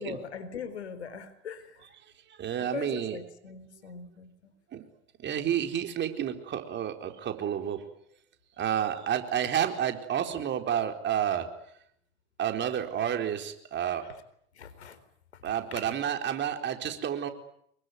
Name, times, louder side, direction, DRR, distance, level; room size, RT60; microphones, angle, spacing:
voice 1, 0.0-1.8 2.6-4.5 14.5-15.0, left 6 dB, 75° left, 4.3 m, -41 dB
voice 2, 2.3-3.2 4.7-4.9 5.2-7.8 8.6-11.5 12.4-14.0 15.4-17.3, right 9 dB, 35° right, 4.3 m, -30 dB
27.0 x 23.0 x 9.5 m
hypercardioid pair, 85°, 33 cm